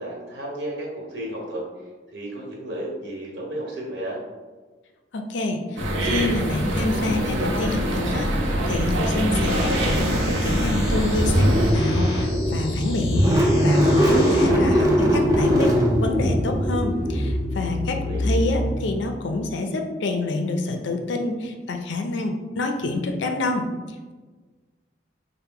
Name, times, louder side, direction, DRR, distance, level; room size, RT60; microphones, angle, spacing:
voice 1, 0.0-1.6 2.1-4.2 17.9-18.2, right 1 dB, 65° right, -3 dB, 1.1 m, -33 dB
voice 2, 5.1-8.3 8.7-13.3 13.6-15.7 16.0-23.7, left 2 dB, 75° left, 5 dB, 0.4 m, -27 dB
sound 1, 5.8-11.7, equal, 85° right, 0.7 m, -24 dB
sound 2, 9.5-14.5, left 1 dB, 30° left, 0.6 m, -32 dB
Car / Engine starting, 10.4-19.2, equal, 20° right, 0.4 m, -21 dB
4.3 x 2.1 x 3.5 m, 1.3 s
head